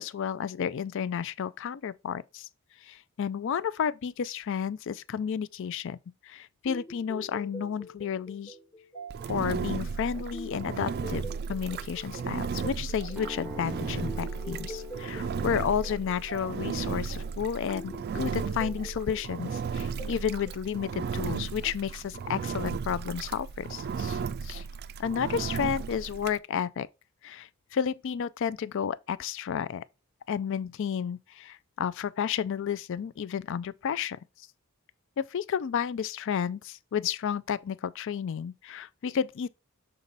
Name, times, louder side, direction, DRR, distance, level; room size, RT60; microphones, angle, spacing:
voice 1, 0.0-2.5 2.8-6.0 6.2-8.5 9.3-24.6 25.0-26.9 27.2-29.8 30.3-34.2 35.2-39.5, left 7 dB, 60° left, 0.4 m, -32 dB
sound 1, 6.7-21.4, equal, 25° left, 1.3 m, -46 dB
Engine, 9.1-26.4, right 5 dB, 50° right, 0.3 m, -35 dB
sound 2, 13.1-21.1, left 1 dB, 5° right, 0.7 m, -48 dB
6.7 x 4.1 x 3.9 m
head